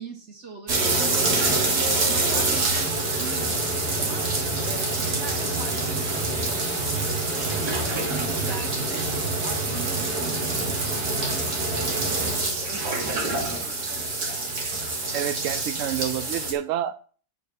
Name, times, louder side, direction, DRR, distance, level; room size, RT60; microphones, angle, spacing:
voice 1, 0.0-1.6 2.0-4.3 4.6-7.1 7.5-7.7 8.0-9.1 9.4-14.2, right 4 dB, 40° right, 2 dB, 2.1 m, -40 dB
sound 1, 0.7-16.5, right 2 dB, 65° right, 2.2 m, -26 dB
voice 2, 15.1-17.1, right 11 dB, 80° right, 12 dB, 0.7 m, -29 dB
8.3 x 5.0 x 6.7 m, 0.42 s
omnidirectional pair, 1.9 m